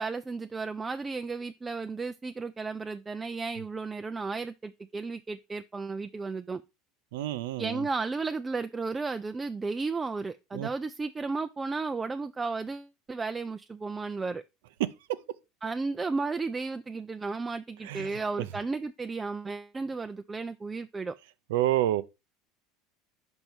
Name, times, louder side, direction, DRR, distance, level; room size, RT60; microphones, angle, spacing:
voice 1, 0.0-6.6 7.6-14.4 15.6-21.1, right 4 dB, 15° right, 0.3 m, -34 dB
voice 2, 7.1-7.9 10.5-10.7 14.8-15.2 17.8-18.1 21.5-22.0, right 13 dB, 85° right, 0.6 m, -28 dB
5.4 x 5.3 x 4.5 m
supercardioid pair, 120°, 0 cm